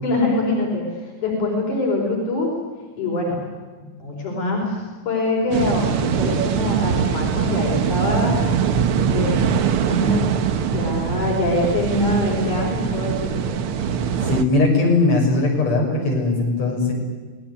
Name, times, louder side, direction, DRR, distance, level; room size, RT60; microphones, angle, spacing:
voice 1, 0.0-2.5 3.0-3.4 3.7-8.4 9.1-9.6 9.8-10.4 10.6-13.5, left 2 dB, 90° left, -1 dB, 6.0 m, -24 dB
sound 1, 5.5-14.4, right 7 dB, 60° right, 1.7 m, -22 dB
voice 2, 14.3-16.9, left 3 dB, 60° left, -1 dB, 8.0 m, -19 dB
26.5 x 19.5 x 9.5 m, 1.4 s
omnidirectional pair, 3.4 m